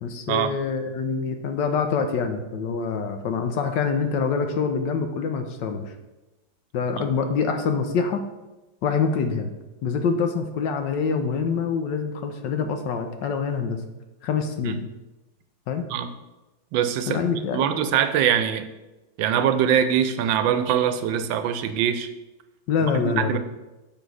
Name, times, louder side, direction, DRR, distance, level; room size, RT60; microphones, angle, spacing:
voice 1, 0.0-5.8 6.7-8.2 8.8-9.5 9.8-13.8 14.2-14.8 15.7-15.8 17.1-17.6 22.7-23.4, left 5 dB, 75° left, 6 dB, 1.4 m, -25 dB
voice 2, 16.7-17.2 17.5-18.7 19.2-22.1 23.2-23.4, right 9 dB, 85° right, 10 dB, 1.3 m, -22 dB
6.8 x 6.1 x 4.8 m, 1.1 s
omnidirectional pair, 2.1 m